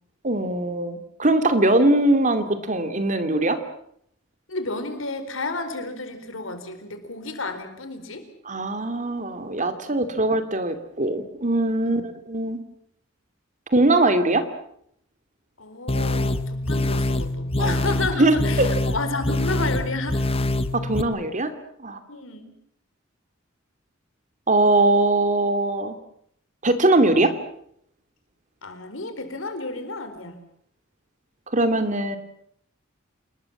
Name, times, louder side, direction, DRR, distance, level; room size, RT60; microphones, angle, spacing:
voice 1, 0.2-3.6 8.4-12.0 12.3-12.6 13.7-14.5 17.6-17.8 18.2-18.7 20.7-21.5 21.8-22.0 24.5-26.0 26.6-27.3 31.5-32.2, right 2 dB, 40° right, 9 dB, 2.8 m, -21 dB
voice 2, 4.5-8.3 9.9-10.1 11.8-12.1 15.6-20.2 22.1-22.5 28.6-30.4, left 3 dB, 85° left, 8 dB, 4.4 m, -31 dB
sound 1, 15.9-21.0, left 1 dB, 30° left, 1.2 m, -25 dB
29.0 x 20.5 x 7.4 m, 0.69 s
head